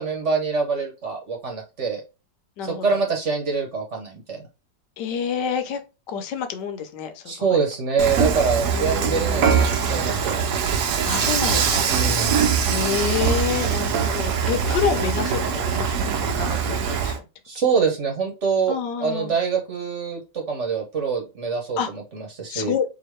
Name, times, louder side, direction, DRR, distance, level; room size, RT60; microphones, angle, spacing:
voice 1, 0.0-2.0 2.6-4.4 7.3-10.5 11.9-12.4 17.4-18.8 19.0-22.7, right 5 dB, 45° right, 1.2 m, -25 dB
voice 2, 2.6-3.0 5.0-5.8 6.1-7.6 8.7-9.9 11.1-11.9 12.7-17.1 18.7-19.4 21.8-21.9 22.5-22.8, left 7 dB, 75° left, 1.3 m, -28 dB
Dishes pots and pans / Frying (food), 8.0-17.2, right 6 dB, 70° right, 1.2 m, -22 dB
4.2 x 2.8 x 3.0 m
omnidirectional pair, 1.9 m